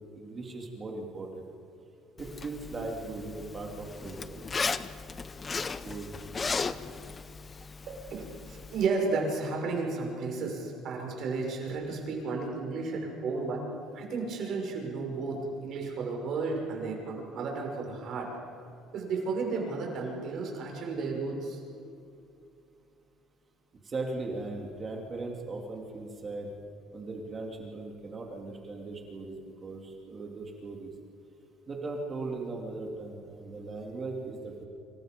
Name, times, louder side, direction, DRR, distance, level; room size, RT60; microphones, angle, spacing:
voice 1, 0.1-1.5 2.2-4.7 5.8-6.1 23.8-26.5 26.9-30.9 31.7-34.6, right 3 dB, 20° right, 0 dB, 2.9 m, -38 dB
Zipper (clothing), 2.2-8.9, left 4 dB, 20° left, 0.7 m, -36 dB
voice 2, 7.9-13.7 13.9-18.3 18.9-21.6, right 4 dB, 45° right, 1 dB, 6.0 m, -33 dB
29.0 x 27.0 x 5.3 m, 2.6 s
cardioid pair, 175°, 0 cm